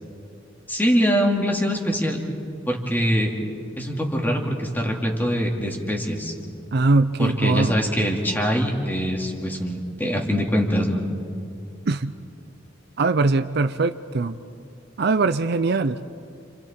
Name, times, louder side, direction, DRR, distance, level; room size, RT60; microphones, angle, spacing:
voice 1, 0.7-2.2 2.7-3.3 3.8-6.3 7.2-11.0, equal, 10° left, 0 dB, 2.6 m, -23 dB
voice 2, 6.7-7.7 11.9-12.1 13.0-14.4 15.0-16.0, right 3 dB, 60° right, 10 dB, 0.6 m, -21 dB
30.0 x 28.5 x 4.4 m, 2.5 s
head